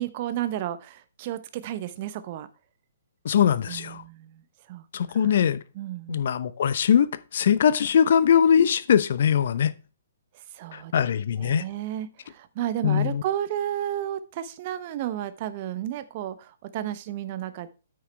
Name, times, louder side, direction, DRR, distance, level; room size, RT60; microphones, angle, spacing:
voice 1, 0.0-2.5 3.7-4.4 4.7-4.8 5.1-5.3 5.7-6.2 10.5-11.1 11.4-17.7, right 12 dB, 40° right, 1.0 m, -32 dB
voice 2, 3.2-4.0 4.9-5.6 6.1-7.1 7.3-9.7 10.9-11.6 12.8-13.2, left 8 dB, 55° left, 0.7 m, -21 dB
9.3 x 6.3 x 4.5 m
figure-of-eight pair, 130°, 0 cm